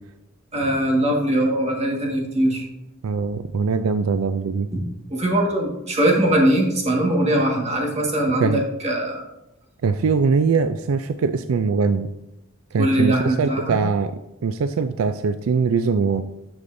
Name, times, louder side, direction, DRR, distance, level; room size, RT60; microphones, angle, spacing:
voice 1, 0.5-2.7 4.7-4.8 5.1-9.3 12.8-13.8, right 1 dB, 35° right, -1 dB, 1.6 m, -21 dB
voice 2, 3.0-4.7 8.4-8.6 9.8-12.1 12.7-14.1 14.4-16.2, right 5 dB, 80° right, 11 dB, 0.4 m, -22 dB
9.7 x 6.9 x 2.6 m, 0.89 s
head